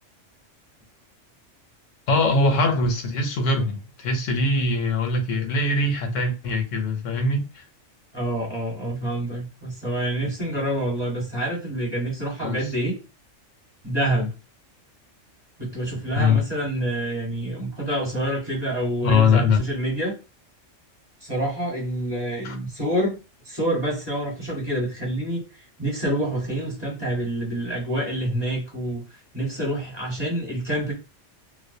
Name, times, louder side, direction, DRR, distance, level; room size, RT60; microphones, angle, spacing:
voice 1, 2.1-7.7 12.4-12.6 16.2-16.4 19.0-19.6 22.4-22.6, left 3 dB, 85° left, 1.0 m, -22 dB
voice 2, 8.1-13.0 13.8-14.3 15.6-20.2 21.2-23.2 23.4-25.4 25.8-30.9, right 1 dB, 20° right, 1.0 m, -27 dB
2.3 x 2.0 x 2.6 m
omnidirectional pair, 1.3 m